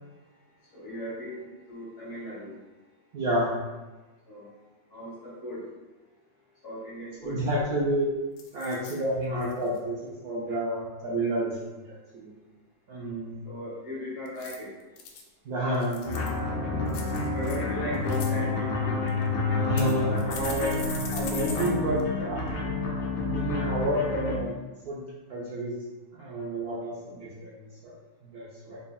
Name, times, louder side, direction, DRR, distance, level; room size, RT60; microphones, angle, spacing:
voice 1, 0.7-2.6 4.3-4.5 4.9-5.6 6.6-7.4 13.5-14.7 17.3-19.0 28.6-28.8, equal, 45° left, -8 dB, 1.9 m, -37 dB
voice 2, 3.1-3.6 7.2-8.1 8.5-12.3 12.9-13.4 15.4-16.7 19.5-20.7 21.1-22.4 23.3-24.5 24.8-25.0 25.3-25.7 26.1-27.7 28.2-28.8, right 1 dB, 65° right, -7 dB, 1.0 m, -30 dB
sound 1, 7.2-7.3 7.6-7.9 8.4-9.0 9.4-9.8 14.3-15.2 15.7-16.4 16.9-17.6 17.9-18.3 19.1-19.2 19.8-21.7 22.0-22.1 22.5-22.6, left 5 dB, 90° left, 1.3 m, -40 dB
sound 2, 16.0-24.3, left 3 dB, 75° left, 1.2 m, -29 dB
4.0 x 3.4 x 2.3 m, 1.1 s
omnidirectional pair, 2.1 m